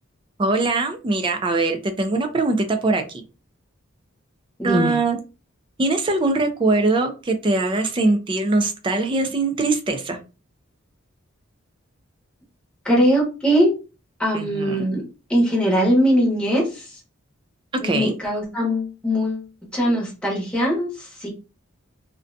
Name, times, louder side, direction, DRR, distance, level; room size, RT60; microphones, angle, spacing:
voice 1, 0.4-3.2 4.6-5.2 5.8-10.2 14.3-14.8 17.8-18.1, right 2 dB, 25° right, 7 dB, 0.4 m, -22 dB
voice 2, 4.6-5.0 12.8-13.7 14.2-15.0 15.3-17.0 17.8-19.5 19.7-21.3, equal, 5° left, -4 dB, 0.9 m, -21 dB
2.5 x 2.2 x 2.5 m, 0.32 s
head